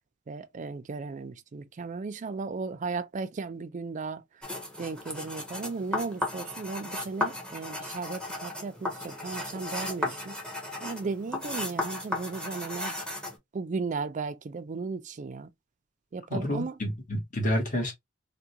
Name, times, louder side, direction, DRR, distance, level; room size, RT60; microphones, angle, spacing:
voice 1, 0.3-4.5 4.8-10.3 10.8-12.9 13.5-15.5 16.1-16.8, right 4 dB, 40° right, 0.4 m, -35 dB
sound 1, 4.4-13.4, left 1 dB, 5° left, 0.8 m, -35 dB
voice 2, 16.3-17.9, left 1 dB, 40° left, 1.2 m, -29 dB
3.5 x 2.2 x 2.7 m
head